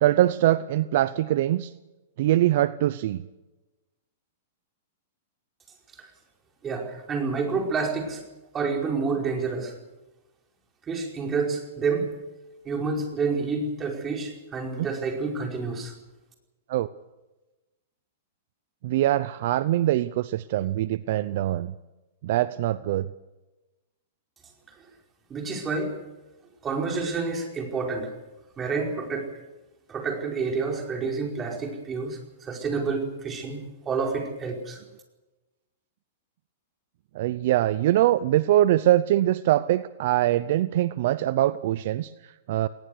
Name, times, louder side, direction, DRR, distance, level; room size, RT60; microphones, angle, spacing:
voice 1, 0.0-1.7 2.2-3.3 14.8-14.9 16.7-16.9 18.8-21.7 22.2-23.1 37.1-42.7, right 14 dB, 60° right, 16 dB, 0.7 m, -23 dB
voice 2, 6.6-8.2 8.5-9.7 10.9-12.1 12.6-15.9 25.3-26.0 26.6-28.1 28.6-29.3 29.9-34.8, right 4 dB, 20° right, 1 dB, 5.0 m, -29 dB
21.0 x 19.5 x 6.6 m, 1.1 s
hypercardioid pair, 145°, 0 cm